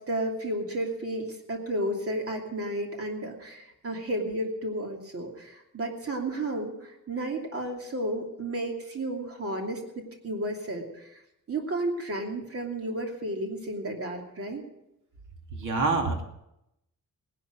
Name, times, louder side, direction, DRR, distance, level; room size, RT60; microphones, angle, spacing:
voice 1, 0.0-11.2 11.5-14.6, right 1 dB, 45° right, 1 dB, 2.8 m, -32 dB
voice 2, 15.5-16.2, right 3 dB, 65° right, 3 dB, 2.6 m, -26 dB
19.0 x 11.5 x 6.2 m, 0.84 s
wide cardioid pair, 165°, 33 cm